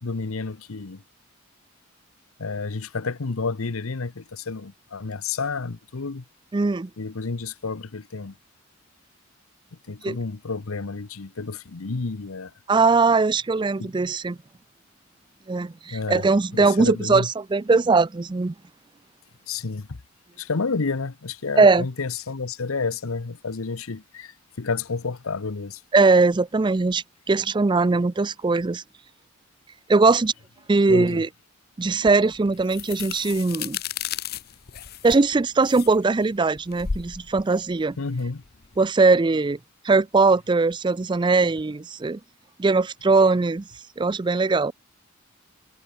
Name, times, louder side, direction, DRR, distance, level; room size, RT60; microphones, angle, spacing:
voice 1, 0.0-1.0 2.4-6.2 7.0-8.4 9.9-12.5 13.8-13.9 15.9-16.3 16.5-17.3 19.5-20.0 20.4-25.8 30.9-31.2 38.0-38.4, left 4 dB, 85° left, 0.9 m, -30 dB
voice 2, 6.5-6.9 10.0-10.2 12.7-14.4 15.5-18.5 21.6-21.9 25.9-28.8 29.9-30.3 30.7-31.3 31.8-33.8 35.0-38.0 38.8-39.6 39.8-42.2 42.6-43.6 44.0-44.7, right 3 dB, 20° right, 0.4 m, -20 dB
sound 1, 32.1-38.8, left 7 dB, 50° left, 0.7 m, -35 dB
head